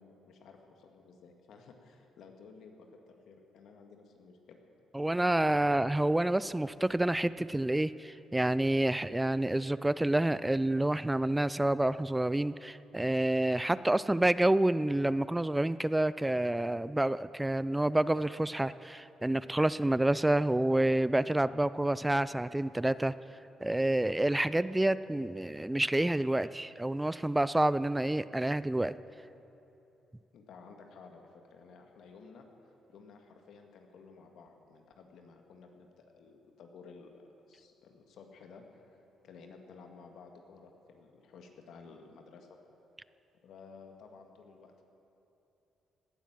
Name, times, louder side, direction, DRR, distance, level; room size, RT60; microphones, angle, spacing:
voice 1, 0.0-4.6 30.3-42.5 43.4-44.8, left 4 dB, 75° left, 4 dB, 1.8 m, -54 dB
voice 2, 4.9-23.1 23.6-28.9, right 1 dB, 10° right, 16 dB, 0.3 m, -28 dB
17.5 x 10.5 x 7.5 m, 2.9 s
cardioid pair, 90°, 0 cm